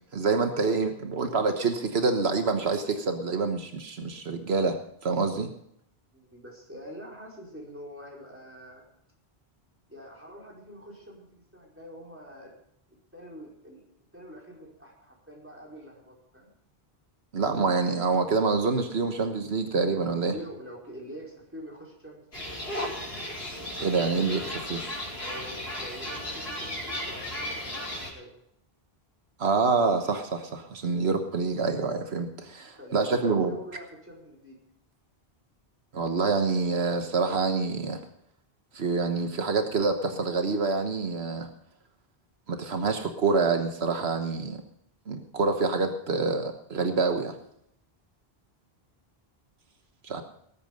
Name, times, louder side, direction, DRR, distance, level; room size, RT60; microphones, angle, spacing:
voice 1, 0.1-4.8 5.0-5.5 17.3-20.3 23.8-24.8 29.4-33.5 35.9-38.0 38.7-41.5 42.5-44.6 45.1-47.3 50.0-50.2, right 4 dB, 80° right, 6 dB, 1.5 m, -26 dB
voice 2, 6.1-8.9 9.9-12.5 13.1-13.8 14.1-16.5 20.3-22.5 25.2-28.3 32.7-34.6, equal, 10° right, -3 dB, 4.8 m, -45 dB
sound 1, 22.3-28.1, left 1 dB, 80° left, 4.8 m, -35 dB
19.5 x 8.6 x 5.3 m, 0.72 s
omnidirectional pair, 1.0 m